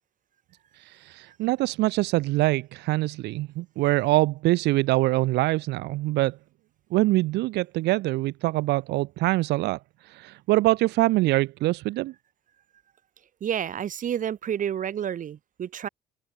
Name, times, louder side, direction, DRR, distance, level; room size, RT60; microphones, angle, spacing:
voice 1, 0.8-6.4 6.9-12.1, right 19 dB, 85° right, 2.6 m, -24 dB
voice 2, 13.4-15.9, right 9 dB, 50° right, 5.9 m, -30 dB
cardioid pair, 110°, 17 cm